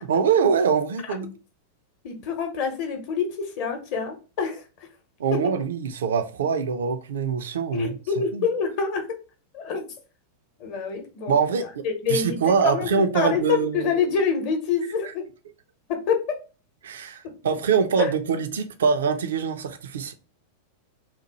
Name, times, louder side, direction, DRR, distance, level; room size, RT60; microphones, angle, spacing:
voice 1, 0.1-1.3 5.2-7.9 8.3-8.4 11.3-13.9 16.8-20.1, right 6 dB, 65° right, 0.3 m, -24 dB
voice 2, 2.0-4.6 5.3-5.4 7.7-9.1 9.5-9.9 10.6-11.3 11.6-15.2 15.9-16.4 18.0-18.1, left 6 dB, 45° left, 0.8 m, -26 dB
2.9 x 2.2 x 2.9 m
figure-of-eight pair, 90°, 0 cm